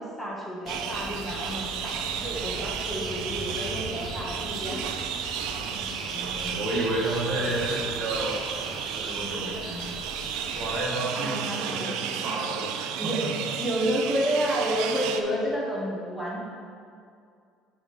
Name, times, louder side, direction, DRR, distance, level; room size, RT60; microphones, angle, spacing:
voice 1, 0.0-4.9 7.3-7.7 11.1-12.3 13.0-13.2 13.6-16.4, equal, 5° left, -4 dB, 1.4 m, -30 dB
sound 1, 0.7-10.8, left 2 dB, 35° left, 0.9 m, -41 dB
sound 2, 0.7-15.2, right 8 dB, 75° right, 0.4 m, -33 dB
voice 2, 2.1-2.5 5.5-9.8 10.5-13.5, right 1 dB, 45° right, -3 dB, 1.3 m, -32 dB
6.4 x 3.6 x 5.0 m, 2.3 s
supercardioid pair, 100°, 0 cm